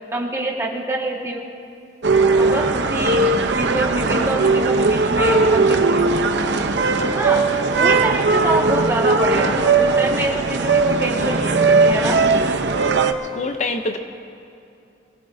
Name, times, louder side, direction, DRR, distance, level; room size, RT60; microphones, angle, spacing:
voice 1, 0.1-1.4 2.4-3.2 3.6-6.1 7.0-7.4 7.8-12.2, right 1 dB, 15° right, -2 dB, 1.7 m, -25 dB
sound 1, 2.0-13.1, right 3 dB, 90° right, 0.7 m, -18 dB
voice 2, 13.3-14.0, left 2 dB, 40° left, 6 dB, 0.6 m, -24 dB
24.5 x 17.0 x 2.7 m, 2.6 s
head